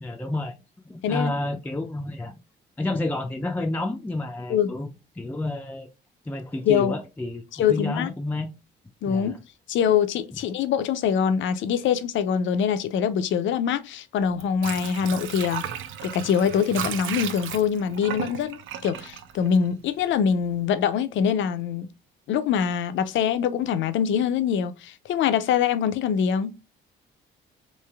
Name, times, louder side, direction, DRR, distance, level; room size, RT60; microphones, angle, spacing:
voice 1, 0.0-0.5 0.9-2.3 2.8-4.9 5.2-5.9 6.3-8.5 9.1-9.4 10.3-10.4, left 2 dB, 10° left, 0.3 m, -30 dB
voice 2, 6.7-7.0 7.5-8.1 9.0-9.4 9.7-15.6 16.0-21.9 22.3-26.5, left 7 dB, 70° left, 0.4 m, -24 dB
Water / Sink (filling or washing), 14.2-20.1 20.5-20.6, right 9 dB, 80° right, 0.5 m, -35 dB
3.1 x 2.8 x 2.2 m
cardioid pair, 90°, 20 cm